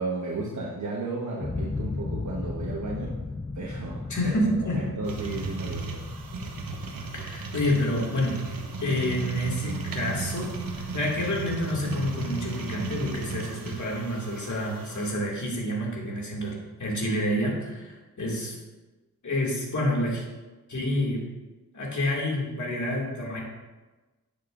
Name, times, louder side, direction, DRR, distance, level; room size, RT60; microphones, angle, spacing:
voice 1, 0.0-3.2 3.5-6.0, right 3 dB, 55° right, -3 dB, 1.3 m, -34 dB
sound 1, 1.4-10.3, left 3 dB, 15° left, 0.3 m, -36 dB
voice 2, 4.1-4.8 7.1-8.4 8.8-18.5 19.2-20.2 20.7-21.2 21.7-23.4, left 1 dB, 55° left, -3 dB, 2.4 m, -28 dB
sound 2, 5.0-15.2, right 4 dB, 75° right, 1.1 m, -35 dB
10.5 x 6.7 x 2.6 m, 1.2 s
cardioid pair, 70°, 35 cm